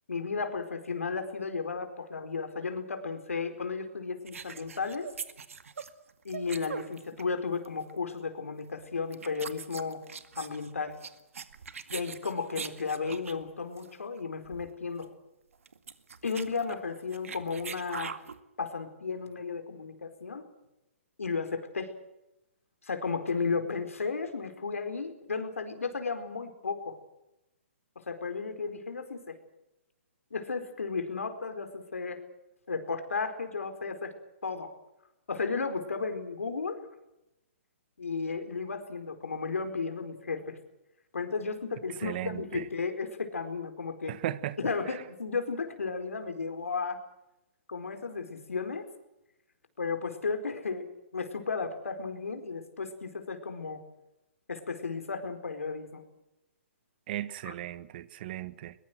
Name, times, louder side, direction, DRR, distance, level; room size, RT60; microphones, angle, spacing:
voice 1, 0.1-5.1 6.2-10.0 10.3-10.9 11.9-15.1 16.2-18.2 18.6-20.4 21.2-21.9 22.8-27.0 28.1-29.4 30.3-32.2 32.7-34.1 34.4-34.7 35.3-36.8 38.0-40.6 41.1-44.1 44.6-47.0 47.7-48.9 49.8-50.8 51.1-53.8 54.5-56.0 57.4-57.5, left 4 dB, 90° left, 4.5 m, -34 dB
sound 1, 4.3-7.4 7.6-7.9 8.7-8.8 9.1-13.4 13.8-13.9 14.2-14.3 14.4-14.7 15.0-15.1 15.5-18.4, right 6 dB, 80° right, 2.1 m, -42 dB
voice 2, 42.0-42.7 44.1-44.6 44.9-45.0 57.1-58.7, right 13 dB, 45° right, 1.3 m, -36 dB
22.0 x 22.0 x 7.9 m
hypercardioid pair, 140°, 7 cm